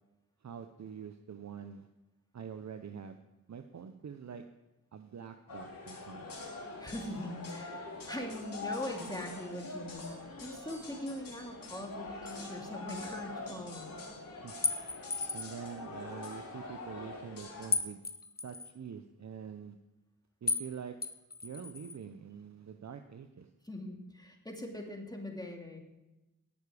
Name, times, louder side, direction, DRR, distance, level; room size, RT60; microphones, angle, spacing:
voice 1, 0.4-1.9 2.3-3.2 3.5-4.5 4.9-6.3 14.4-14.7 15.3-18.0 18.4-19.8 20.4-21.0 21.4-23.5, right 7 dB, 55° right, 8 dB, 0.8 m, -45 dB
sound 1, 5.5-17.7, left 3 dB, 80° left, 3.0 m, -44 dB
voice 2, 6.8-10.1 10.4-14.0 23.6-25.8, left 1 dB, 10° left, 1 dB, 2.6 m, -41 dB
sound 2, 14.6-15.6 17.7-18.7 20.5-20.7 21.0-22.0, left 3 dB, 30° left, 0.9 m, -34 dB
18.0 x 6.9 x 4.9 m, 1.0 s
cardioid pair, 50°, 33 cm